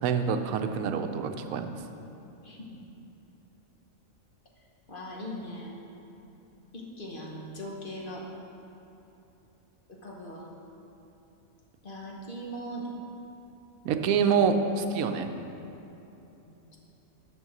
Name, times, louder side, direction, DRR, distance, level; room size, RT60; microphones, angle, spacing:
voice 1, 0.0-1.8 13.8-15.3, right 6 dB, 85° right, 7 dB, 1.0 m, -26 dB
voice 2, 4.9-5.7 6.7-8.3 9.9-10.5 11.8-12.9 16.5-16.8, equal, 45° left, -2 dB, 1.1 m, -40 dB
6.5 x 6.5 x 6.0 m, 3.0 s
omnidirectional pair, 1.4 m